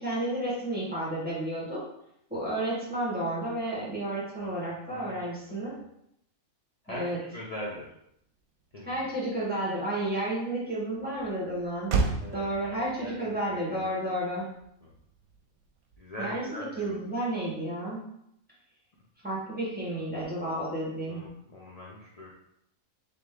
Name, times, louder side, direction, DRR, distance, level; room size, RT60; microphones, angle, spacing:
voice 1, 0.0-1.8 2.3-5.8 6.9-7.2 8.8-14.5 16.2-18.0 19.2-21.2, right 1 dB, 5° right, -7 dB, 1.5 m, -32 dB
voice 2, 6.8-7.9 8.7-9.1 12.2-13.9 14.8-14.9 16.0-17.0 19.9-20.0 21.1-22.3, left 1 dB, 50° left, -5 dB, 0.4 m, -42 dB
Motor vehicle (road), 8.0-16.4, right 4 dB, 75° right, 1.1 m, -37 dB
3.8 x 3.2 x 3.7 m, 0.76 s
omnidirectional pair, 1.5 m